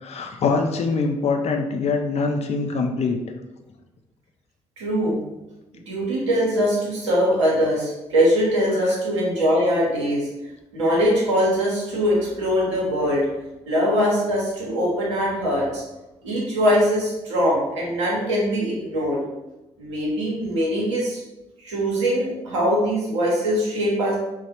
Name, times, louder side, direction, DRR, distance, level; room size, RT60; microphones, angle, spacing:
voice 1, 0.0-3.2 8.9-9.0, left 4 dB, 45° left, 4 dB, 0.4 m, -23 dB
voice 2, 4.8-5.2 5.9-10.3 10.7-13.2 13.7-15.8 16.2-19.2 19.8-21.2 21.6-24.1, equal, 85° right, -5 dB, 0.7 m, -22 dB
3.0 x 2.1 x 2.9 m, 1.0 s
hypercardioid pair, 40°, 15 cm